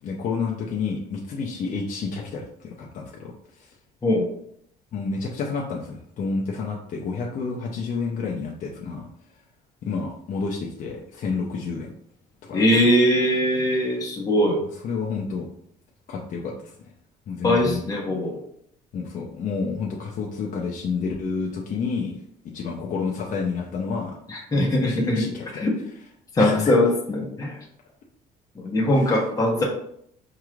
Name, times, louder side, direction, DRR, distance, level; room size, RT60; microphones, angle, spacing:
voice 1, 0.0-3.7 4.9-9.1 9.8-11.9 12.4-12.9 14.8-15.5 16.1-16.7 17.3-17.8 18.9-22.2 22.5-24.2 24.6-25.7 26.4-26.7 28.9-29.1, left 4 dB, 50° left, -2 dB, 0.7 m, -30 dB
voice 2, 12.5-14.6 17.4-18.4 24.3-25.2 25.5-25.8 26.3-27.6 28.5-29.6, left 1 dB, 20° left, -1 dB, 0.9 m, -21 dB
4.7 x 3.1 x 2.4 m, 0.69 s
cardioid pair, 110°, 17 cm